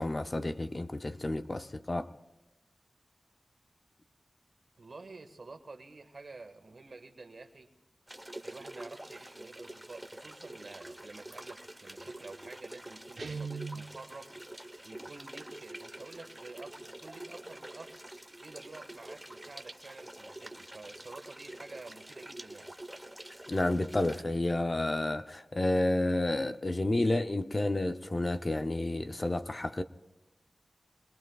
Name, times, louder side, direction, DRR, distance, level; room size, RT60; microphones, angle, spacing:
voice 1, 0.0-2.1 23.5-29.8, left 2 dB, 35° left, 0.6 m, -30 dB
voice 2, 4.8-7.7 8.4-14.3 14.8-18.0 18.4-22.7, right 3 dB, 60° right, 1.6 m, -49 dB
sound 1, 8.1-24.2, right 1 dB, 10° right, 1.0 m, -47 dB
Guitar, 13.2-14.0, right 4 dB, 75° right, 1.0 m, -38 dB
27.5 x 21.5 x 2.3 m
wide cardioid pair, 90°, 0 cm